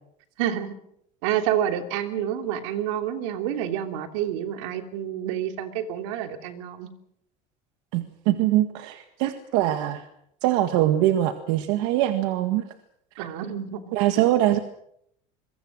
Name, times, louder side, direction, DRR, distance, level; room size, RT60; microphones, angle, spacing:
voice 1, 0.4-0.7 1.2-6.9 13.2-13.9, right 10 dB, 90° right, 6 dB, 3.1 m, -28 dB
voice 2, 7.9-10.0 10.4-12.6 13.9-14.6, right 13 dB, 70° right, 7 dB, 1.8 m, -23 dB
26.0 x 23.0 x 6.4 m, 0.73 s
cardioid pair, 175°, 15 cm